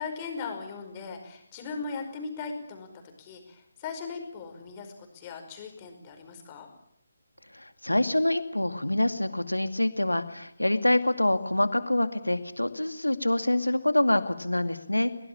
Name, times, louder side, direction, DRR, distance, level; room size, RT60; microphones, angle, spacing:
voice 1, 0.0-2.9 3.2-6.7, left 5 dB, 25° left, 5 dB, 5.1 m, -38 dB
voice 2, 7.5-15.1, left 1 dB, 90° left, 10 dB, 2.2 m, -26 dB
23.0 x 19.0 x 8.7 m, 0.76 s
figure-of-eight pair, 150°, 0 cm